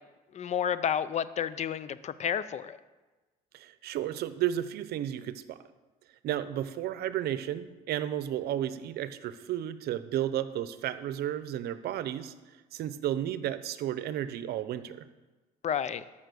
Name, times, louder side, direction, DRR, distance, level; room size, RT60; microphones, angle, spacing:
voice 1, 0.3-2.8 15.6-16.0, left 8 dB, 40° left, 16 dB, 0.6 m, -30 dB
voice 2, 3.5-5.6 6.2-12.3 12.7-15.0, right 11 dB, 70° right, 13 dB, 0.7 m, -33 dB
13.5 x 5.7 x 6.3 m, 1.2 s
cardioid pair, 110°, 17 cm